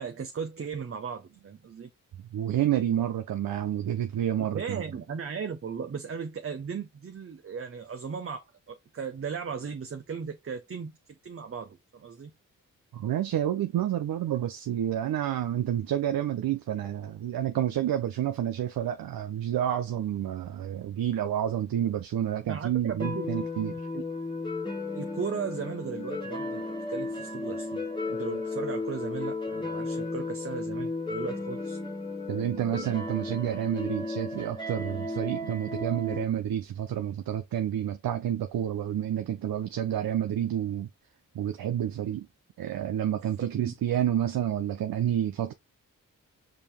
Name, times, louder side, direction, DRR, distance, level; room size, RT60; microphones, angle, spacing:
voice 1, 0.0-1.9 4.4-10.9 11.2-12.3 22.4-23.3 23.9-24.0 24.9-31.8 43.4-43.7, right 6 dB, 40° right, 0.7 m, -37 dB
voice 2, 2.3-4.8 12.9-23.9 32.3-40.9 41.3-42.3 42.6-45.5, right 11 dB, 85° right, 0.6 m, -29 dB
sound 1, 23.0-36.2, left 2 dB, 15° left, 1.5 m, -34 dB
5.0 x 2.8 x 3.5 m
cardioid pair, 65°, 34 cm